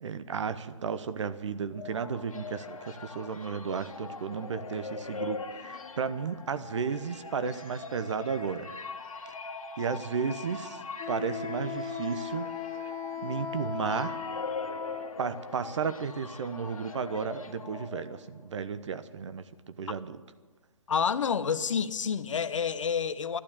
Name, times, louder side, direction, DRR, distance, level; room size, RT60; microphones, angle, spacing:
voice 1, 0.0-8.7 9.8-10.8 11.1-12.5 13.2-14.2 15.2-20.2, right 6 dB, 60° right, 12 dB, 1.0 m, -33 dB
sound 1, 1.5-18.5, left 4 dB, 85° left, 1.8 m, -42 dB
Wind instrument woodwind instrument, 11.0-15.1, left 7 dB, 20° left, 1.3 m, -37 dB
voice 2, 20.9-23.4, left 6 dB, 65° left, 12 dB, 0.9 m, -28 dB
12.0 x 11.5 x 8.7 m, 1.4 s
hypercardioid pair, 145°, 17 cm